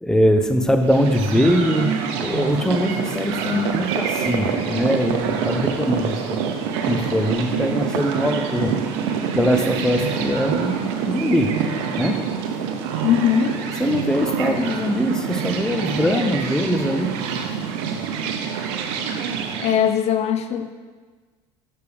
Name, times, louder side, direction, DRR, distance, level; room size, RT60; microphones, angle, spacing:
voice 1, 0.0-6.4 6.9-8.8 9.3-11.6 11.9-12.3 13.8-17.1, equal, 5° left, 6 dB, 0.6 m, -22 dB
sound 1, 0.8-19.8, right 6 dB, 85° right, 0.7 m, -26 dB
voice 2, 13.0-13.6 16.0-16.3 19.6-20.8, left 9 dB, 50° left, 8 dB, 0.5 m, -21 dB
6.7 x 6.6 x 3.4 m, 1.4 s
supercardioid pair, 85°, 14 cm